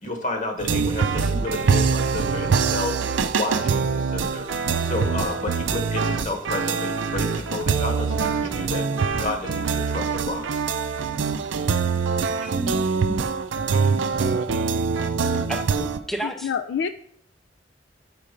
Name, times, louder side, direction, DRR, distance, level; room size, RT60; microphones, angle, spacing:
voice 1, 0.0-10.6, left 2 dB, 45° left, 3 dB, 1.2 m, -31 dB
sound 1, 0.6-16.0, right 5 dB, 90° right, 0.5 m, -24 dB
voice 2, 12.3-13.2 15.5-16.5, right 1 dB, ahead, 4 dB, 0.5 m, -32 dB
voice 3, 16.2-16.9, left 7 dB, 70° left, 10 dB, 0.3 m, -27 dB
5.7 x 4.4 x 5.1 m, 0.64 s
head